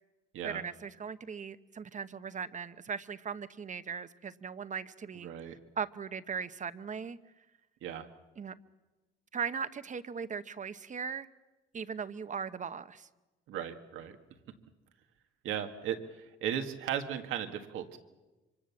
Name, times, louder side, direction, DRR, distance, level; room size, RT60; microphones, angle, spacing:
voice 1, 0.4-5.3 5.8-7.2 8.4-8.5 9.3-11.3 11.7-13.1, right 6 dB, 40° right, 12 dB, 1.0 m, -38 dB
voice 2, 5.2-5.6 7.8-8.1 13.5-14.2 15.4-18.0, right 9 dB, 90° right, 6 dB, 1.8 m, -36 dB
25.5 x 25.0 x 7.2 m, 1.1 s
cardioid pair, 90°, 20 cm